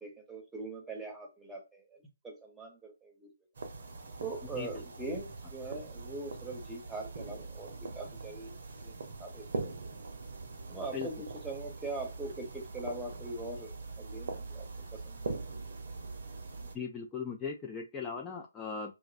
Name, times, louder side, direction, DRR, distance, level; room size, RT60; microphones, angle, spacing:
voice 1, 0.0-2.0 2.2-3.3 4.2-8.5 8.8-8.9 9.2-9.7 10.7-14.7 14.9-15.4, right 2 dB, 5° right, 0 dB, 0.7 m, -42 dB
sound 1, 3.5-16.7, right 3 dB, 60° right, 0.6 m, -42 dB
voice 2, 16.7-18.9, left 6 dB, 15° left, 1 dB, 0.3 m, -38 dB
2.4 x 2.0 x 2.4 m, 0.26 s
figure-of-eight pair, 145°, 0 cm